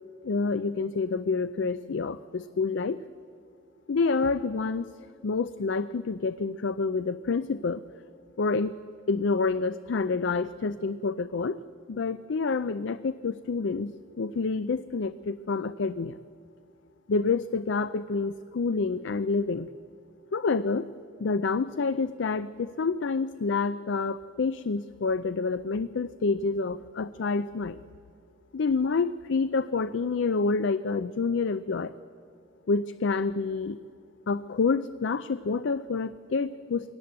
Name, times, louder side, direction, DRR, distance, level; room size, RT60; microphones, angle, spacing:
voice 1, 0.2-3.0 3.9-4.9 5.2-7.8 8.4-8.8 9.1-11.6 11.9-16.2 17.1-19.7 20.3-20.9 21.2-27.8 28.5-31.9 32.7-33.8 34.3-36.9, left 4 dB, 65° left, 14 dB, 0.5 m, -28 dB
21.0 x 18.0 x 7.9 m, 2.5 s
head